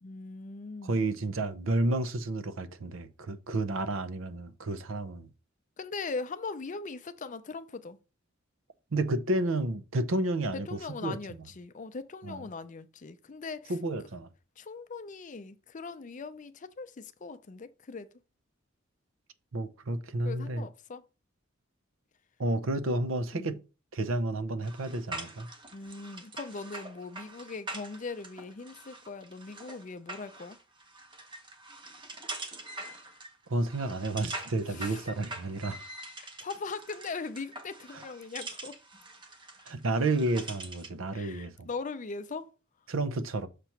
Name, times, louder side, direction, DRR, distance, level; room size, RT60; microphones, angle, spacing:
voice 1, 0.0-1.0 5.8-8.0 10.5-13.7 14.6-18.1 20.2-21.0 23.3-23.6 25.7-30.6 34.7-35.0 36.2-38.8 41.1-42.5, left 4 dB, 40° left, 0.5 m, -40 dB
voice 2, 0.8-5.3 8.9-11.2 12.2-12.4 13.7-14.3 19.5-20.7 22.4-23.6 23.9-25.5 33.5-35.8 37.9-38.0 39.7-41.7 42.9-43.5, right 2 dB, 80° right, 0.7 m, -31 dB
sound 1, 24.6-41.0, right 2 dB, 25° right, 0.9 m, -44 dB
6.7 x 3.0 x 5.8 m
head